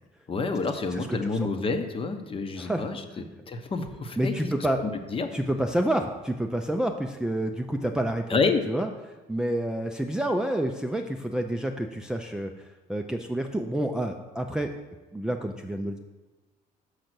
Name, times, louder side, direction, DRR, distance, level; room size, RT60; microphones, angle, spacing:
voice 1, 0.3-5.3 8.3-8.6, left 4 dB, 30° left, 7 dB, 0.8 m, -29 dB
voice 2, 0.9-1.5 2.6-2.8 3.2-3.3 4.2-4.8 5.3-8.4 8.7-8.9 9.3-12.5 12.9-14.7 15.1-16.0, right 1 dB, 5° right, 3 dB, 0.4 m, -28 dB
6.5 x 5.2 x 6.0 m, 1.1 s
cardioid pair, 110°, 17 cm